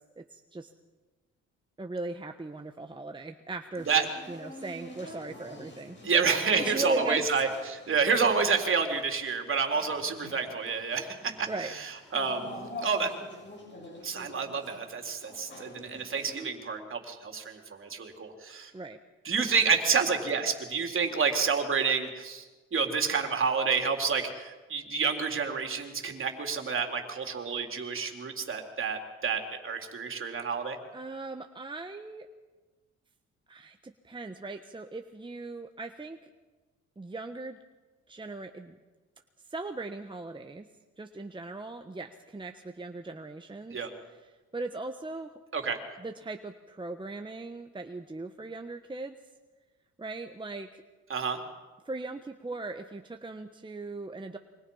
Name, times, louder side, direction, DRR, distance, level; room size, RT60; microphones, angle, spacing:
voice 1, 0.2-0.7 1.8-3.9 4.3-6.0 6.6-7.5 11.0-11.7 18.7-19.0 19.4-19.5 30.9-32.3 33.5-36.2 37.0-37.6 38.1-38.8 39.5-40.6 41.0-43.8 44.0-45.3 46.0-49.1 50.0-50.8 51.8-54.4, right 2 dB, 15° right, 5 dB, 1.2 m, -38 dB
sound 1, 3.7-16.5, left 2 dB, 40° left, 7.1 m, -46 dB
voice 2, 6.0-11.5 12.1-13.1 14.0-18.7 19.3-22.4 22.7-30.8 43.7-43.9 45.5-45.8 51.1-51.4, right 5 dB, 45° right, 3 dB, 3.8 m, -29 dB
26.5 x 24.5 x 5.7 m, 1.3 s
cardioid pair, 90°, 30 cm